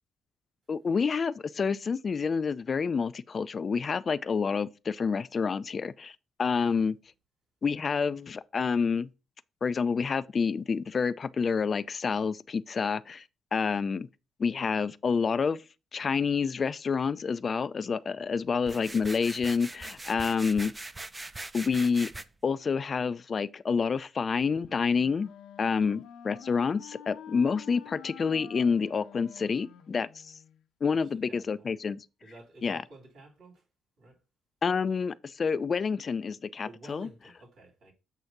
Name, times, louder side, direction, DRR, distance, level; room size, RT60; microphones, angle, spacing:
voice 1, 0.7-7.0 7.6-9.1 9.6-13.2 13.5-14.1 14.4-15.6 15.9-20.7 21.5-22.1 22.4-25.3 25.6-30.3 30.8-32.1 32.6-32.8 34.6-37.1, left 5 dB, 40° left, 0.3 m, -28 dB
sound 1, 18.6-22.2, right 2 dB, 20° right, 0.5 m, -41 dB
Wind instrument woodwind instrument, 24.5-30.6, left 10 dB, 80° left, 0.8 m, -49 dB
voice 2, 31.3-31.7 32.2-33.6 34.0-34.2 36.6-37.9, right 2 dB, 75° right, 3.6 m, -51 dB
7.9 x 2.7 x 5.8 m
cardioid pair, 90°, 0 cm